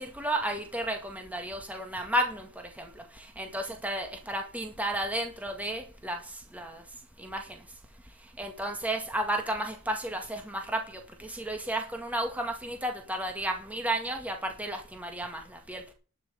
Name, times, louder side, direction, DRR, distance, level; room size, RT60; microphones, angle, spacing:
voice 1, 0.0-2.5 2.8-2.9 3.4-6.2 6.5-6.8 7.2-7.4 8.4-10.8 11.2-15.8, right 1 dB, 5° right, 1.9 m, -32 dB
12.0 x 6.2 x 7.9 m
head